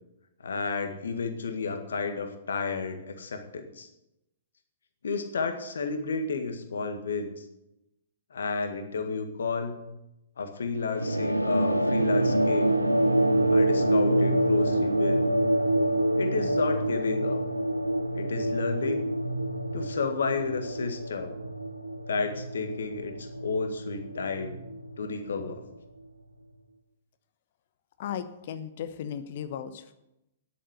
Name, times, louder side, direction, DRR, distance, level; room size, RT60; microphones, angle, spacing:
voice 1, 0.4-3.9 5.0-7.4 8.3-9.9 10.4-12.8 13.5-15.3 16.2-17.4 18.1-19.1 19.7-21.3 22.1-24.6 25.0-25.6, left 4 dB, 65° left, 7 dB, 1.7 m, -32 dB
sound 1, 10.9-25.8, right 1 dB, 90° right, 0.9 m, -26 dB
voice 2, 28.0-29.9, left 8 dB, 50° left, 12 dB, 1.0 m, -36 dB
10.5 x 8.2 x 8.1 m, 0.89 s
figure-of-eight pair, 115°, 0 cm